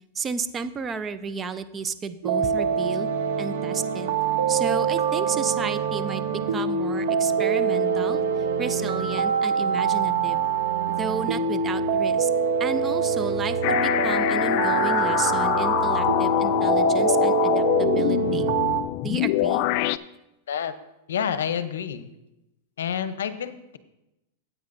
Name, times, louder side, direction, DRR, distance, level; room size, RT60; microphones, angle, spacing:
voice 1, 0.1-3.1 3.4-4.1 4.5-8.2 8.6-10.5 10.9-12.3 12.6-18.5 19.0-19.6, right 5 dB, 20° right, 12 dB, 0.5 m, -32 dB
sound 1, 2.2-18.8, right 6 dB, 70° right, 0.9 m, -24 dB
sound 2, 13.6-20.0, left 15 dB, 50° left, 0.3 m, -24 dB
voice 2, 21.1-22.1 22.8-23.8, left 8 dB, 85° left, 12 dB, 0.7 m, -28 dB
15.0 x 8.2 x 2.6 m, 0.93 s
hypercardioid pair, 135°, 0 cm